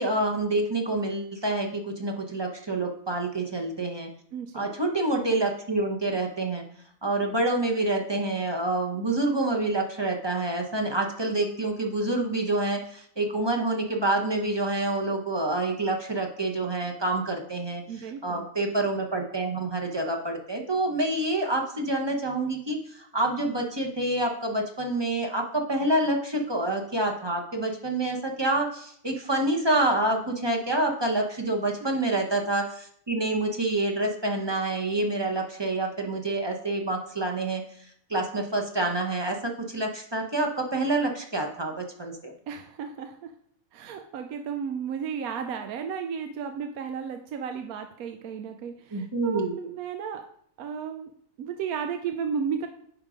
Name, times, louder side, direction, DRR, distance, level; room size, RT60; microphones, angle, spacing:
voice 1, 0.0-4.1 4.5-6.6 7.0-17.8 18.2-37.6 38.1-42.3 48.9-49.5, right 2 dB, 25° right, 2 dB, 0.7 m, -27 dB
voice 2, 4.3-4.7 17.9-18.5 31.8-31.9 42.5-43.3 43.7-50.2 50.6-51.1 51.4-52.7, right 7 dB, 80° right, 6 dB, 1.1 m, -34 dB
9.8 x 3.7 x 5.0 m, 0.64 s
omnidirectional pair, 1.5 m